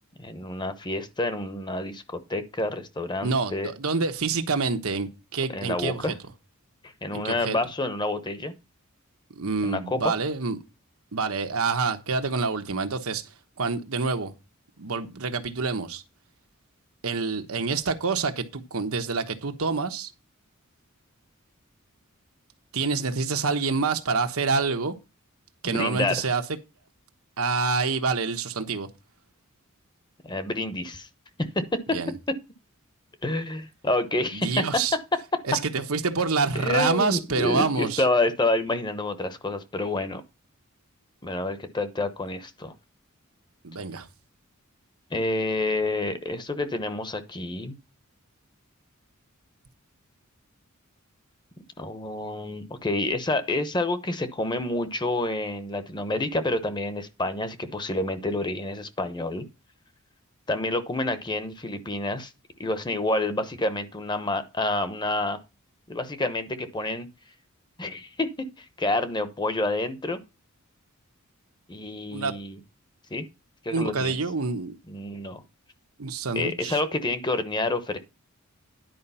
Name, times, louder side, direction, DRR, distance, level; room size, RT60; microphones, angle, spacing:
voice 1, 0.2-3.7 5.5-6.1 6.8-8.5 9.6-10.1 25.6-26.3 30.2-31.1 31.4-32.0 32.3-32.4 33.2-34.7 34.9-35.0 36.5-40.2 41.2-42.7 45.1-47.8 51.8-59.4 60.5-62.3 62.6-65.4 65.9-67.1 67.8-70.2 71.7-72.6 73.1-73.3 73.6-74.2 74.9-75.4 76.3-78.0, left 2 dB, 20° left, 0.9 m, -28 dB
voice 2, 3.2-6.1 7.1-7.6 9.4-10.6 11.1-13.2 13.6-14.3 14.8-16.0 17.0-20.1 22.7-24.9 25.6-26.4 27.4-28.9 31.9-32.1 34.3-35.0 35.5-38.0 43.6-44.1 72.1-72.3 73.7-74.8 76.0-76.8, right 4 dB, 85° right, 1.1 m, -27 dB
10.5 x 5.0 x 5.6 m
head